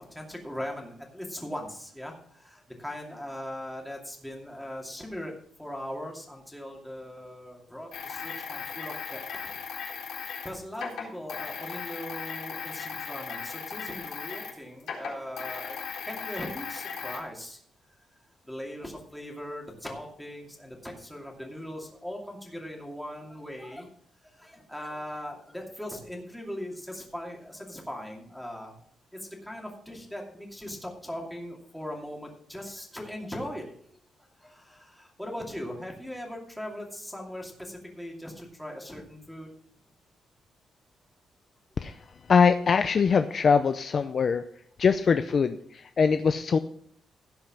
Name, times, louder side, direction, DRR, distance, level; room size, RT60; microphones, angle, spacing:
voice 1, 0.0-5.3 5.6-9.5 10.4-17.6 18.4-23.9 24.3-28.8 29.1-33.7 34.4-39.5, equal, ahead, -1 dB, 2.6 m, -39 dB
sound 1, 7.9-14.5 14.8-17.2, left 6 dB, 70° left, 4.0 m, -37 dB
voice 2, 42.3-44.4 44.8-46.6, left 5 dB, 35° left, 9 dB, 0.5 m, -22 dB
16.5 x 5.5 x 6.0 m, 0.64 s
cardioid pair, 165°, 0 cm